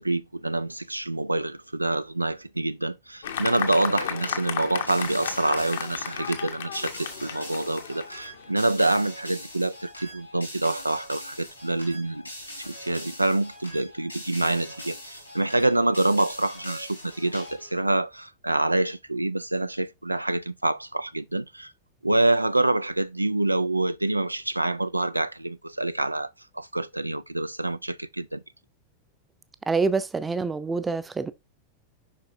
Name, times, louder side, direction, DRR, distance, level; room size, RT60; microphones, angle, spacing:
voice 1, 0.0-12.2 12.6-21.7 22.0-28.4, right 2 dB, 85° right, 0.3 m, -26 dB
Fireworks, 3.2-9.0, left 8 dB, 65° left, 1.0 m, -34 dB
sound 1, 4.9-17.8, left 1 dB, 90° left, 3.6 m, -42 dB
voice 2, 29.7-31.3, right 4 dB, 15° right, 0.7 m, -26 dB
7.4 x 5.6 x 2.6 m
figure-of-eight pair, 90°, 0 cm